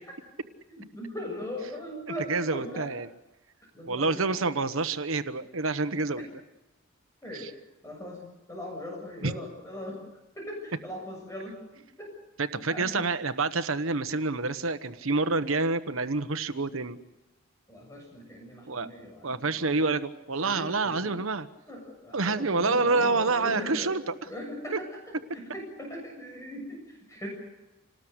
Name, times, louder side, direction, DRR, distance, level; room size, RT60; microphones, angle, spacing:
voice 1, 0.7-2.9 3.7-4.4 6.2-6.3 7.2-7.5 7.8-10.0 10.4-11.6 12.0-12.1 12.4-13.0 17.7-19.9 20.4-21.2 21.7-24.0 24.2-27.3, left 1 dB, 15° left, 0 dB, 7.3 m, -40 dB
voice 2, 2.3-3.1 3.9-6.2 9.2-9.3 12.5-17.0 18.7-18.9 19.2-21.5 22.1-24.0, right 3 dB, 80° right, 10 dB, 1.2 m, -27 dB
28.0 x 19.5 x 8.1 m, 0.99 s
head